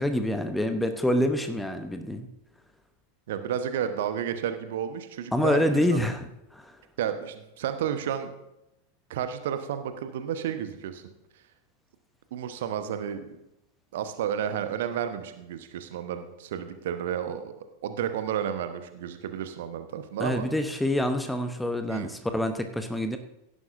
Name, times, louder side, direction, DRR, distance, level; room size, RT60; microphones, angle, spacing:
voice 1, 0.0-2.3 5.3-6.8 20.2-23.2, left 1 dB, 5° left, 8 dB, 0.8 m, -27 dB
voice 2, 3.3-6.0 7.0-8.4 9.1-11.0 12.3-13.3 13.9-17.5 17.8-20.5 21.9-22.1, right 9 dB, 55° right, 9 dB, 1.0 m, -31 dB
16.5 x 11.0 x 2.6 m, 0.88 s
figure-of-eight pair, 90°, 0 cm